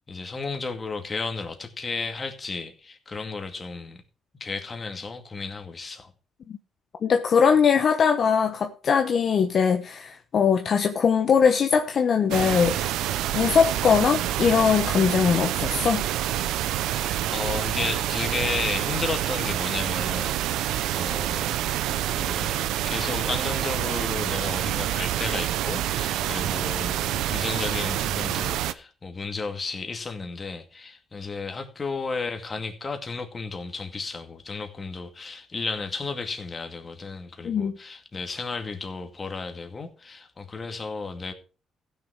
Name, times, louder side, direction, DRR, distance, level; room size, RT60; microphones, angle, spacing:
voice 1, 0.1-4.0 4.4-6.1 16.8-21.6 22.1-41.3, left 4 dB, 30° left, 2.2 m, -33 dB
voice 2, 7.0-12.9 13.3-16.0 37.4-37.8, left 6 dB, 55° left, 1.0 m, -21 dB
sound 1, 12.3-28.7, right 12 dB, 90° right, 0.6 m, -27 dB
15.5 x 6.7 x 4.7 m
cardioid pair, 90°, 0 cm